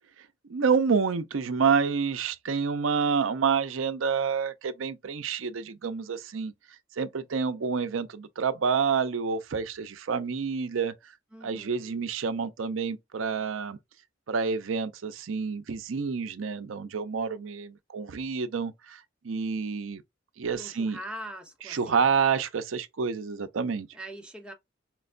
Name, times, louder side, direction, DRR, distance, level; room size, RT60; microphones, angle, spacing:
voice 1, 0.5-6.5 7.0-10.9 11.4-13.8 14.3-20.0 20.4-21.0 21.7-23.9, right 5 dB, 90° right, 0.5 m, -28 dB
voice 2, 11.3-12.0 20.5-22.1 23.9-24.5, right 1 dB, 5° right, 0.9 m, -42 dB
4.4 x 2.2 x 2.4 m
head